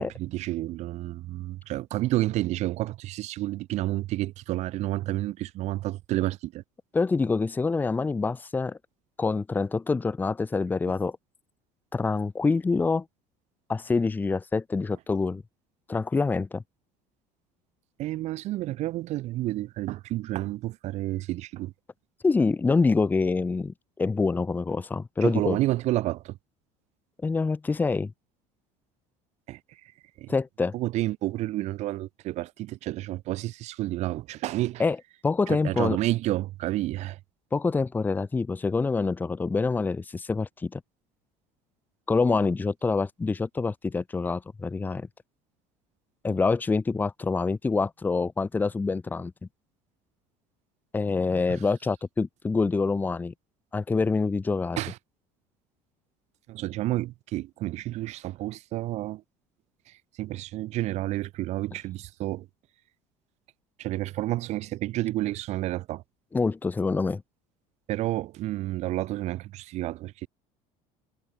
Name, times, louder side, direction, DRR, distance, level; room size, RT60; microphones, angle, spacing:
voice 1, 0.0-6.6 18.0-21.7 25.2-26.4 29.5-29.9 30.2-30.3 30.7-34.8 35.5-37.2 51.5-51.6 54.8-55.0 56.5-59.2 59.9-62.5 63.8-66.0 67.9-70.3, right 16 dB, 60° right, 6.9 m, -30 dB
voice 2, 6.9-8.8 9.2-11.2 11.9-13.0 13.7-15.4 15.9-16.6 22.2-25.6 27.2-28.1 30.3-30.7 34.8-35.0 35.2-36.0 37.5-40.8 42.1-45.1 46.2-49.3 50.9-53.3 53.7-54.8 66.3-67.2, left 4 dB, 15° left, 0.8 m, -26 dB
cardioid pair, 125°, 13 cm